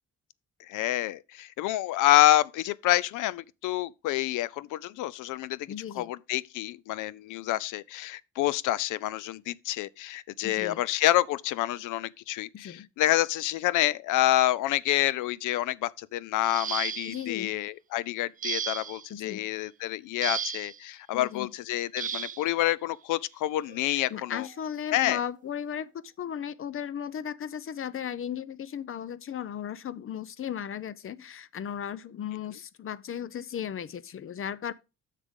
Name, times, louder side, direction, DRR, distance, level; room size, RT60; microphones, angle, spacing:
voice 1, 0.7-5.7 6.0-24.5 24.9-25.2, left 15 dB, 85° left, 0.5 m, -27 dB
voice 2, 5.7-6.1 10.4-10.8 12.5-12.9 17.1-17.6 19.1-19.4 21.1-21.5 23.9-34.7, left 9 dB, 45° left, 0.6 m, -36 dB
sound 1, 16.4-17.3 18.4-19.1 20.2-20.8 22.0-22.4 23.6-23.8 24.3-24.5, right 8 dB, 30° right, 0.4 m, -34 dB
9.9 x 6.6 x 3.7 m
cardioid pair, 90°, 30 cm